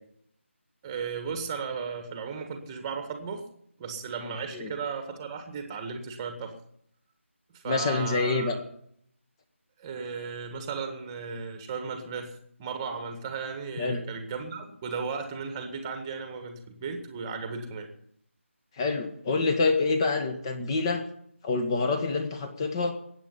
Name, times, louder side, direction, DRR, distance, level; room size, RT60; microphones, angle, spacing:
voice 1, 0.8-3.5 3.8-6.5 7.5-8.6 9.8-17.9, right 5 dB, 15° right, 6 dB, 1.7 m, -35 dB
voice 2, 7.6-8.5 13.8-14.0 18.8-21.0 21.4-22.9, left 3 dB, 20° left, 7 dB, 1.6 m, -26 dB
21.0 x 8.9 x 5.5 m, 0.67 s
figure-of-eight pair, 160°, 7 cm